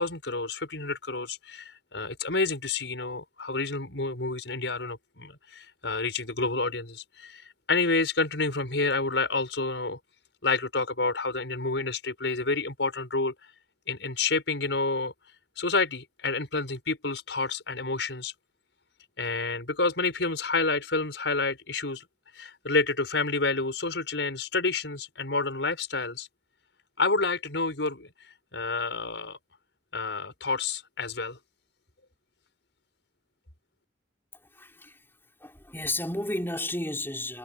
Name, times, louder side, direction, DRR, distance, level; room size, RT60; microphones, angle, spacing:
voice 1, 0.0-7.4 7.7-10.0 10.4-13.3 13.9-15.1 15.6-18.3 19.2-22.0 22.4-26.3 27.0-28.1 28.5-29.4 29.9-31.4, left 3 dB, 85° left, 5.4 m, -29 dB
voice 2, 34.5-35.0 35.4-37.4, left 1 dB, 15° left, 4.9 m, -32 dB
head